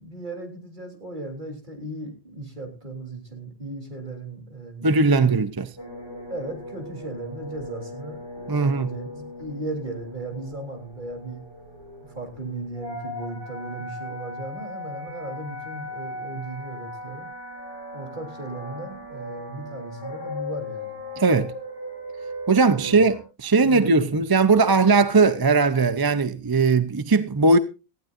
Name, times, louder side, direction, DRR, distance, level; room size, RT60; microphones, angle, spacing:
voice 1, 0.0-5.3 6.3-11.4 12.0-17.3 17.9-21.0 22.7-23.0 23.6-24.2, right 2 dB, 50° right, 3.6 m, -36 dB
voice 2, 4.8-5.7 8.5-8.9 21.2-21.5 22.5-27.6, right 4 dB, 25° right, 0.6 m, -19 dB
sound 1, 5.8-23.2, left 1 dB, 25° left, 4.6 m, -38 dB
18.5 x 15.0 x 2.5 m
omnidirectional pair, 1.1 m